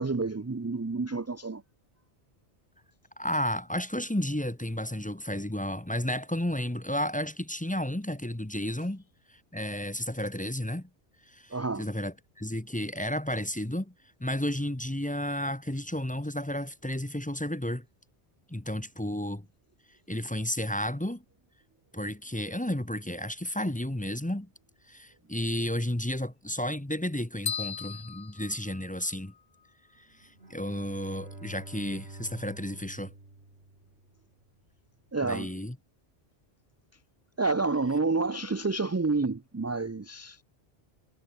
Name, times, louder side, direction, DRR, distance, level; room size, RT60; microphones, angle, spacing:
voice 1, 0.0-1.6 11.5-11.9 35.1-35.5 37.4-40.4, right 3 dB, 25° right, 0.4 m, -29 dB
voice 2, 3.2-9.0 9.3-10.9 11.3-13.9 14.2-17.8 18.5-19.5 20.1-21.2 21.9-24.5 24.9-29.3 30.0-33.1 35.2-35.8, left 1 dB, 10° left, 1.0 m, -32 dB
sound 1, 27.5-29.4, left 7 dB, 60° left, 1.2 m, -37 dB
Bowed string instrument, 30.2-34.3, right 2 dB, 70° right, 4.3 m, -47 dB
omnidirectional pair, 1.1 m